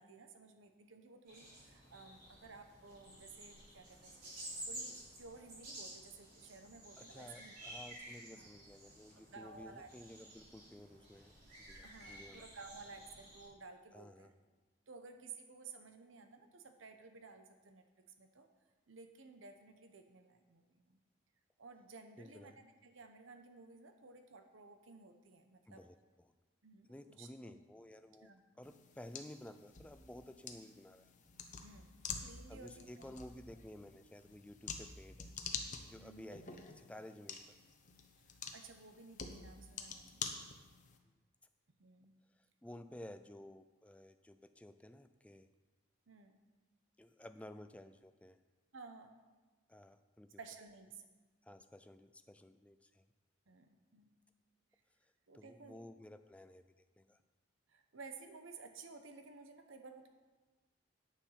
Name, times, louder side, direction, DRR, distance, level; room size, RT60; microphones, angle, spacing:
voice 1, 0.0-4.3 4.7-7.5 8.3-8.5 9.1-9.9 11.8-14.3 14.9-18.5 18.9-21.0 21.6-25.8 26.6-27.6 28.2-28.4 31.6-33.2 35.9-36.3 38.5-40.6 41.8-42.2 46.1-46.4 48.7-49.2 50.4-51.0 53.5-54.1 55.3-55.8 57.7-60.1, right 4 dB, 80° right, 7 dB, 0.9 m, -55 dB
sound 1, 1.3-13.4, right 1 dB, 50° right, 3.9 m, -52 dB
voice 2, 7.0-11.3 11.6-12.4 13.9-14.3 22.2-22.6 25.7-26.3 26.9-28.3 28.6-31.1 32.5-35.3 35.9-37.4 42.6-45.5 47.0-48.4 49.7-50.3 51.4-53.0 55.3-56.6 57.0-57.2, left 1 dB, 5° left, 9 dB, 0.3 m, -54 dB
sound 2, 28.6-41.0, left 5 dB, 40° left, 0.8 m, -48 dB
9.1 x 7.2 x 5.7 m, 1.3 s
head